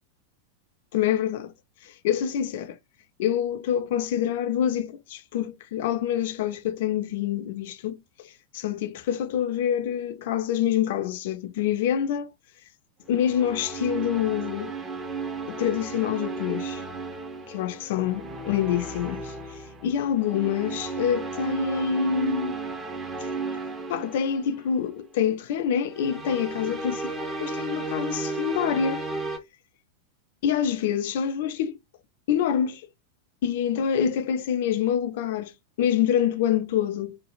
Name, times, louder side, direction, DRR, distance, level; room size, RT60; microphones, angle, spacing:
voice 1, 0.9-1.5 1.8-2.8 3.2-8.0 8.5-12.3 13.1-14.7 15.5-16.8 17.5-19.3 19.8-22.5 23.9-29.0 30.4-31.8 32.3-32.8 33.4-35.5 35.8-37.2, left 9 dB, 55° left, 0.4 m, -26 dB
sound 1, 13.0-25.0 25.9-29.4, right 3 dB, 20° right, 0.6 m, -34 dB
3.2 x 2.4 x 2.4 m
figure-of-eight pair, 90°, 0 cm